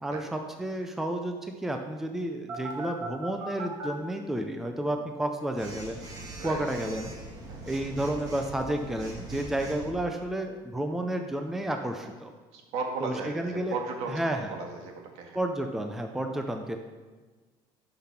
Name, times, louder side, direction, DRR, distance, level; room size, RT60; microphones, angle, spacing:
voice 1, 0.0-6.0 6.4-7.1 7.6-12.3 13.0-13.8 14.1-14.6 15.3-16.8, right 1 dB, 5° right, 4 dB, 0.6 m, -31 dB
Telephone, 2.5-3.9 5.6-9.9, right 2 dB, 35° right, 2.1 m, -40 dB
voice 2, 12.5-14.2 14.5-15.4, right 4 dB, 65° right, 2 dB, 1.9 m, -35 dB
12.0 x 5.9 x 5.9 m, 1.3 s
cardioid pair, 150°, 11 cm